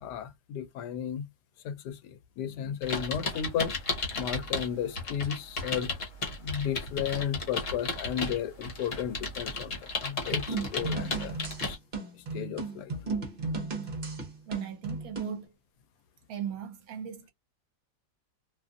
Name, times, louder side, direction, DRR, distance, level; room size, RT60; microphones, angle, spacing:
voice 1, 0.0-1.2 1.6-3.8 4.2-5.9 6.4-11.8 12.3-12.9, left 9 dB, 85° left, 1.1 m, -34 dB
sound 1, 2.8-4.7 5.0-11.8, left 3 dB, 50° left, 1.2 m, -34 dB
sound 2, 10.3-15.4, right 3 dB, 40° right, 1.0 m, -35 dB
voice 2, 14.5-15.5 16.3-17.3, right 8 dB, 70° right, 1.2 m, -38 dB
2.8 x 2.4 x 2.5 m
omnidirectional pair, 1.7 m